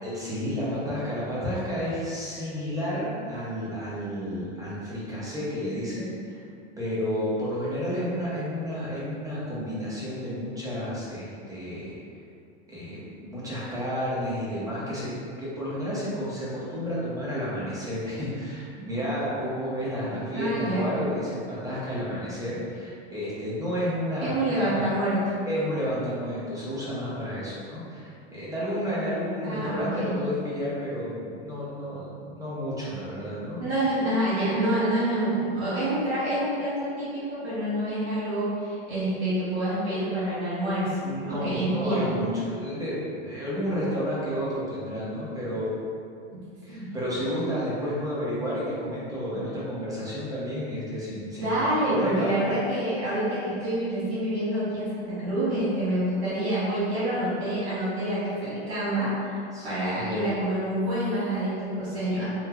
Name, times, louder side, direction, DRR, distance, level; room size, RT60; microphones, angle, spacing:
voice 1, 0.0-6.4 6.8-12.0 12.7-15.1 15.4-24.9 25.5-33.6 41.0-45.8 46.6-51.6 51.9-52.5 59.5-60.3, equal, 10° right, -9 dB, 0.6 m, -31 dB
voice 2, 20.3-20.9 24.2-25.2 29.4-30.2 33.6-40.9 41.2-42.1 46.7-46.9 51.4-59.4 59.6-62.3, right 1 dB, 85° right, -12 dB, 1.2 m, -27 dB
3.2 x 2.1 x 2.3 m, 2.4 s
supercardioid pair, 125°, 33 cm